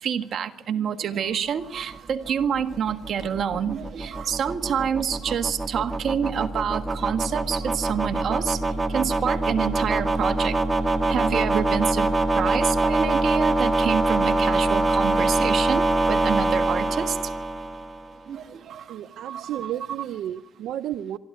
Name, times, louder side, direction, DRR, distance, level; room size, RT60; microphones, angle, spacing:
voice 1, 0.0-8.6 8.9-10.6 11.1-12.1 12.3-17.2 18.3-19.7, right 8 dB, 65° right, 7 dB, 1.5 m, -27 dB
sound 1, 1.9-18.1, right 2 dB, 20° right, 1.6 m, -24 dB
voice 2, 18.9-21.2, right 11 dB, 80° right, 12 dB, 0.6 m, -32 dB
23.5 x 14.0 x 9.7 m, 1.0 s
cardioid pair, 90°, 0 cm